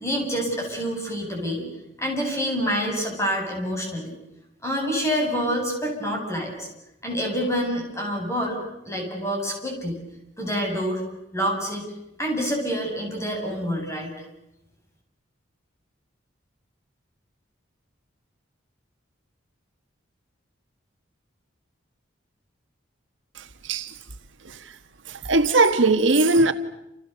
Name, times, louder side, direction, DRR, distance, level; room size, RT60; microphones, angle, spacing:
voice 1, 0.0-1.7 2.0-4.1 4.6-6.7 7.0-8.6 8.8-10.0 10.4-11.0 11.3-11.9 12.2-14.1, equal, 15° left, 8.0 m, -27 dB
voice 2, 23.3-23.9 24.4-24.7 25.1-26.5, right 2 dB, 70° right, 1.5 m, -20 dB
29.5 x 29.0 x 6.9 m
head